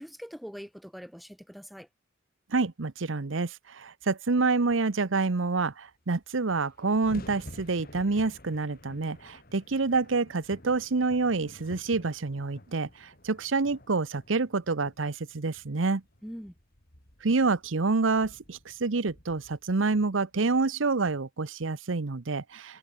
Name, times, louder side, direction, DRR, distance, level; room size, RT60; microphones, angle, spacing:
voice 1, 0.0-1.9 16.2-16.5, equal, ahead, 2.1 m, -43 dB
voice 2, 2.5-16.0 17.2-22.8, right 3 dB, 90° right, 0.9 m, -27 dB
sound 1, 5.9-6.0 6.1-20.5, left 1 dB, 50° left, 6.6 m, -51 dB
head